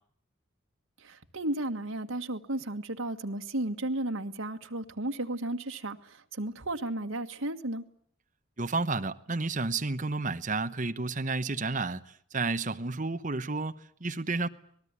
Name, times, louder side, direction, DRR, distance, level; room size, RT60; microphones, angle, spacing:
voice 1, 1.0-7.8, right 1 dB, 80° right, 1.7 m, -34 dB
voice 2, 8.6-12.0 12.3-14.5, right 3 dB, 40° right, 1.1 m, -31 dB
26.0 x 19.5 x 9.7 m
head